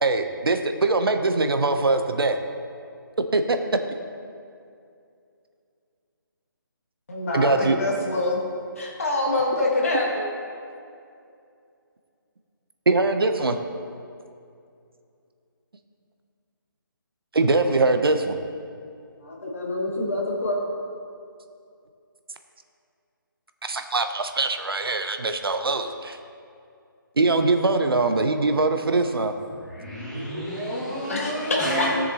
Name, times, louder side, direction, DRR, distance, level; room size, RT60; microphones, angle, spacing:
voice 1, 0.0-2.4 3.3-3.6 7.3-7.8 12.9-13.6 17.3-18.4 23.7-26.2 27.2-29.3, right 3 dB, 90° right, 7 dB, 0.9 m, -22 dB
voice 2, 7.1-8.4 8.8-10.2 19.2-20.6 31.1-31.9, left 2 dB, 40° left, -2 dB, 1.7 m, -25 dB
voice 3, 29.7-31.9, equal, 5° left, -13 dB, 2.1 m, -29 dB
16.5 x 6.7 x 3.0 m, 2.5 s
hypercardioid pair, 180°, 12 cm